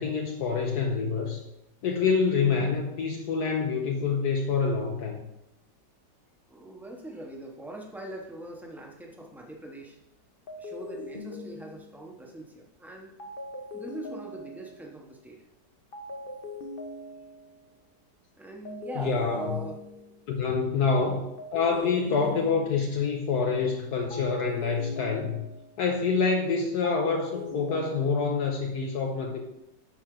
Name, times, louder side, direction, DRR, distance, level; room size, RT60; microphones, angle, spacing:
voice 1, 0.0-1.4 1.8-5.2 19.0-19.6 20.3-25.4 25.8-29.4, left 5 dB, 70° left, 2 dB, 1.3 m, -27 dB
voice 2, 6.5-10.0 10.6-13.1 13.7-15.4 18.4-19.8 20.8-20.9, right 1 dB, ahead, 0 dB, 0.8 m, -42 dB
sound 1, 9.1-9.4 10.5-12.2 13.2-14.9 15.9-17.6 18.6-20.3 21.4-23.1 24.1-25.8 26.8-28.2, left 2 dB, 40° left, 0.8 m, -41 dB
11.0 x 4.4 x 3.8 m, 0.85 s
omnidirectional pair, 1.9 m